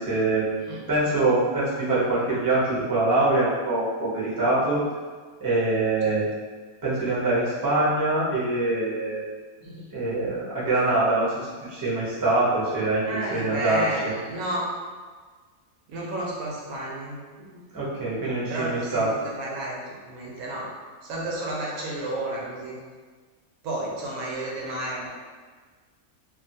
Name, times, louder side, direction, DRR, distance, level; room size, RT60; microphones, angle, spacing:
voice 1, 0.0-4.8 5.4-6.2 6.8-9.2 9.9-14.1 17.7-19.1, right 2 dB, 20° right, -9 dB, 0.6 m, -24 dB
voice 2, 13.0-14.7 15.9-17.6 18.5-20.7 21.0-22.8 23.6-25.1, right 1 dB, 90° right, -4 dB, 1.2 m, -32 dB
2.7 x 2.6 x 2.6 m, 1.5 s
omnidirectional pair, 1.5 m